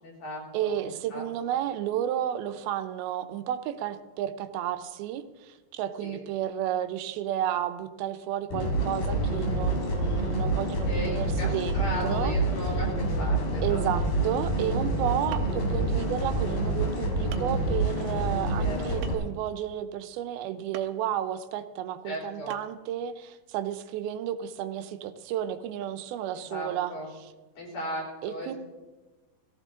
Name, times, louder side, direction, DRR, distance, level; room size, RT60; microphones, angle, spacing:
voice 1, 0.0-0.7 1.1-1.2 6.0-6.2 10.9-12.9 13.2-13.8 18.6-19.0 22.1-22.5 26.5-27.1 27.6-28.6, left 1 dB, 65° left, -3 dB, 5.8 m, -36 dB
voice 2, 0.5-12.4 13.6-26.9 27.2-27.3 28.2-28.5, right 11 dB, 90° right, 10 dB, 2.7 m, -32 dB
sound 1, 8.5-19.1, right 1 dB, 85° left, 4.8 m, -27 dB
sound 2, 14.9-15.0 15.3-15.7 16.5-16.6 17.3-17.6 19.0-19.4 20.7-21.0 22.5-22.8, right 9 dB, 75° right, 2.3 m, -43 dB
17.5 x 15.0 x 3.7 m, 1.2 s
omnidirectional pair, 4.3 m